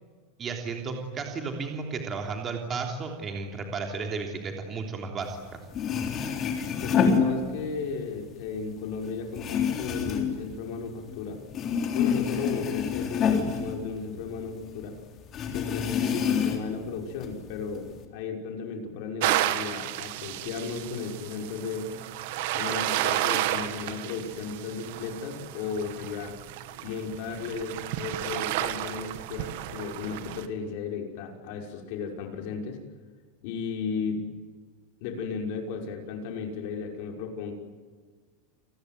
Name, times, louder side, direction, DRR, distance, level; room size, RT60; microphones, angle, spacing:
voice 1, 0.4-5.4, right 4 dB, 20° right, 3 dB, 3.3 m, -33 dB
sound 1, 5.4-5.5 5.7-7.9 8.3-11.2 11.5-14.5 14.8-14.9 15.3-16.8 17.2-18.0, left 7 dB, 25° left, 3.6 m, -27 dB
voice 2, 6.8-11.4 11.9-15.0 15.5-21.9 22.5-26.4 26.8-32.8 33.4-34.4 35.0-37.5, left 5 dB, 50° left, 3 dB, 5.6 m, -35 dB
sound 2, 19.2-30.5, right 14 dB, 60° right, 1.9 m, -32 dB
29.5 x 20.5 x 9.4 m, 1.5 s
supercardioid pair, 170°, 0 cm